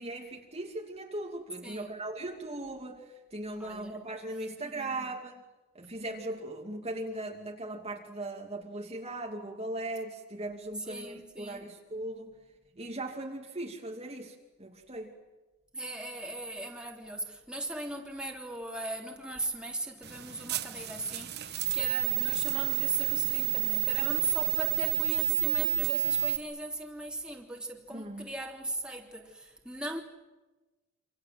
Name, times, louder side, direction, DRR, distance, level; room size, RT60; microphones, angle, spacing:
voice 1, 0.0-5.4 5.7-12.3 12.7-15.1 27.9-28.3, right 2 dB, 30° right, 2.6 m, -39 dB
voice 2, 1.6-2.0 3.6-4.0 4.6-5.1 10.9-11.6 15.7-30.0, right 1 dB, 5° right, 3.4 m, -39 dB
sound 1, 20.0-26.4, right 17 dB, 50° right, 1.3 m, -30 dB
28.0 x 27.0 x 7.8 m
head